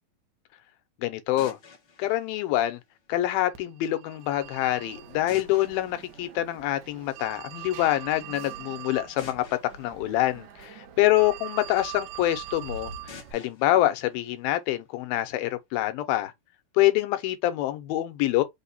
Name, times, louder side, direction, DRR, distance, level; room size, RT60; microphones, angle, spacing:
voice 1, 1.0-1.6 2.0-2.8 3.1-9.4 9.8-16.3 16.8-18.4, left 15 dB, 85° left, 2.6 m, -26 dB
sound 1, 1.4-3.4 5.3-7.2 9.2-11.4 13.1-15.1, left 5 dB, 60° left, 1.3 m, -51 dB
Telephone, 3.5-13.3, right 10 dB, 70° right, 1.9 m, -42 dB
5.6 x 2.3 x 4.1 m
omnidirectional pair, 4.2 m